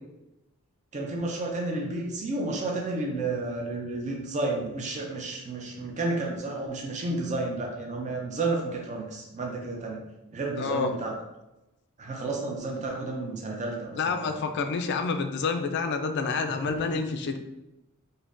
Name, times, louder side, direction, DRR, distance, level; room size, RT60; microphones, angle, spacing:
voice 1, 0.9-10.0 10.3-11.1 12.0-14.3 16.9-17.0, right 2 dB, 35° right, -1 dB, 0.5 m, -31 dB
voice 2, 10.6-10.9 14.0-17.4, left 4 dB, 50° left, 7 dB, 0.3 m, -28 dB
3.5 x 2.7 x 2.5 m, 0.96 s
head